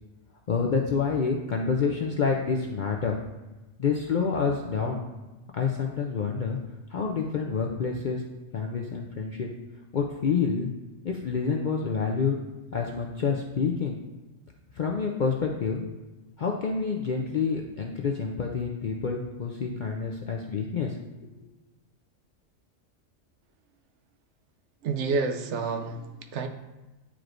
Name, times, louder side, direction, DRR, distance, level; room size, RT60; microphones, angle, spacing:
voice 1, 0.5-3.2 3.8-5.0 5.5-6.6 6.9-8.2 8.5-9.5 9.9-10.7 11.0-12.4 12.7-14.0 14.7-15.8 16.4-21.0 21.2-21.5, left 5 dB, 60° left, 0 dB, 0.5 m, -28 dB
voice 2, 24.8-26.5, right 4 dB, 70° right, 6 dB, 0.8 m, -29 dB
10.0 x 4.6 x 2.5 m, 1.1 s
omnidirectional pair, 1.4 m